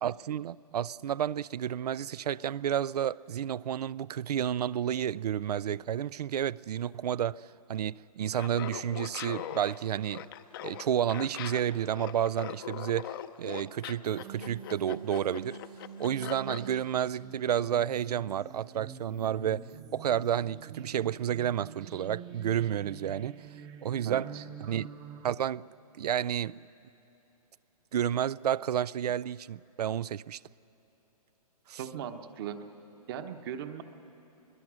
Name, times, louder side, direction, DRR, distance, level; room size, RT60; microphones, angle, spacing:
voice 1, 0.0-10.3 10.6-15.6 16.0-23.5 23.8-24.3 24.7-24.9 25.2-25.7 26.0-26.6 27.9-30.4 31.7-31.8, right 10 dB, 80° right, 0.4 m, -31 dB
Laughter, 8.3-16.7, left 11 dB, 35° left, 0.6 m, -41 dB
sound 1, 14.0-25.3, right 7 dB, 20° right, 0.8 m, -46 dB
voice 2, 24.0-24.4 31.8-32.6 33.1-33.8, right 9 dB, 35° right, 1.1 m, -38 dB
24.0 x 22.0 x 6.2 m
hypercardioid pair, 150°, 20 cm